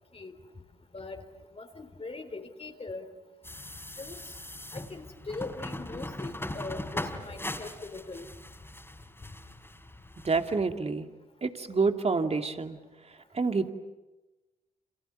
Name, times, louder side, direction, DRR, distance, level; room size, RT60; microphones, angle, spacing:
voice 1, 1.6-3.1 4.0-4.2 4.7-8.3, left 3 dB, 35° left, 5 dB, 3.7 m, -41 dB
sound 1, 3.4-10.6, left 1 dB, 15° left, 4.3 m, -40 dB
voice 2, 10.2-11.1 11.4-12.8 13.3-13.7, right 4 dB, 40° right, 6 dB, 2.7 m, -27 dB
29.5 x 28.0 x 7.0 m, 1.1 s
hypercardioid pair, 40°, 17 cm